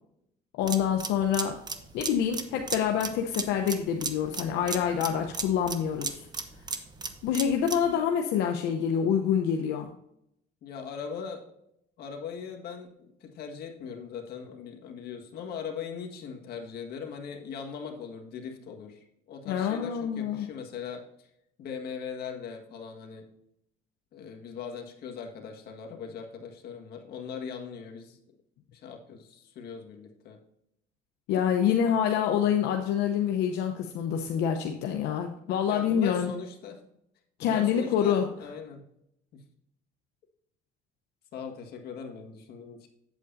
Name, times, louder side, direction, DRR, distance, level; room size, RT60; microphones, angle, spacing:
voice 1, 0.6-1.6 1.9-6.3 7.2-9.9 19.5-20.5 31.3-36.3 37.4-38.2, left 8 dB, 90° left, 3 dB, 0.8 m, -26 dB
sound 1, 0.6-7.9, right 4 dB, 25° right, 0.9 m, -36 dB
voice 2, 10.6-11.4 12.0-21.3 21.6-23.3 24.1-28.2 28.7-30.4 31.9-32.0 35.7-36.8 37.4-38.8 39.3-39.4 41.3-42.9, left 6 dB, 70° left, 3 dB, 1.7 m, -40 dB
8.4 x 8.3 x 2.6 m, 0.77 s
cardioid pair, 110°, 17 cm